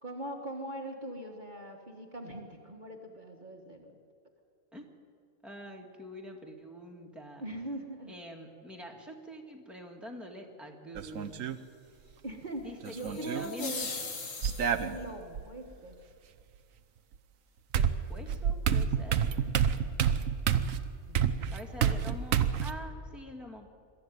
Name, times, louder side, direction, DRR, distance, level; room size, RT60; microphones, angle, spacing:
voice 1, 0.0-4.0 7.4-8.1 12.2-13.9 14.7-16.0 21.1-22.1, right 1 dB, 35° right, 1 dB, 1.7 m, -41 dB
voice 2, 5.4-7.4 8.1-11.6 12.6-13.9 17.7-19.2 21.5-23.7, equal, ahead, 1 dB, 2.0 m, -45 dB
sound 1, 11.0-11.6 12.8-13.5 14.4-15.4 17.1-17.2 17.7-22.7, right 8 dB, 80° right, 1.3 m, -29 dB
sound 2, 12.8-15.0, left 4 dB, 80° left, 2.3 m, -40 dB
22.0 x 13.5 x 9.5 m, 2.3 s
omnidirectional pair, 1.4 m